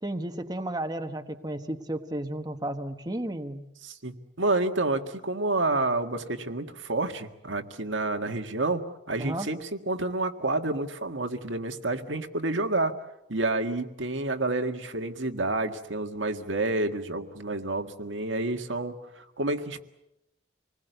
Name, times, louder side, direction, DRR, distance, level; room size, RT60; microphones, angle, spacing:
voice 1, 0.0-3.7 9.2-9.5, right 1 dB, 20° right, 6 dB, 1.3 m, -33 dB
voice 2, 3.8-12.9 13.3-19.8, right 2 dB, 80° right, 6 dB, 1.8 m, -29 dB
27.0 x 20.0 x 8.1 m, 0.87 s
head